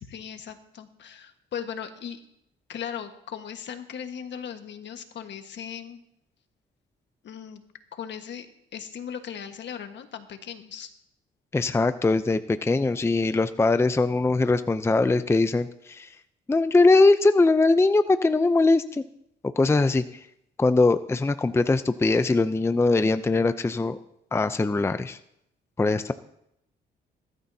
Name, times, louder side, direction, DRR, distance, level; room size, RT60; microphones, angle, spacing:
voice 1, 0.0-2.2 2.7-6.0 7.2-7.6 7.9-8.5 8.7-10.9, left 8 dB, 65° left, 7 dB, 1.5 m, -38 dB
voice 2, 11.5-16.1 16.5-19.0 19.6-20.0 20.6-24.0 24.3-25.2 25.8-26.1, left 3 dB, 15° left, 11 dB, 0.5 m, -21 dB
20.5 x 12.5 x 2.8 m, 0.76 s
cardioid pair, 90°, 20 cm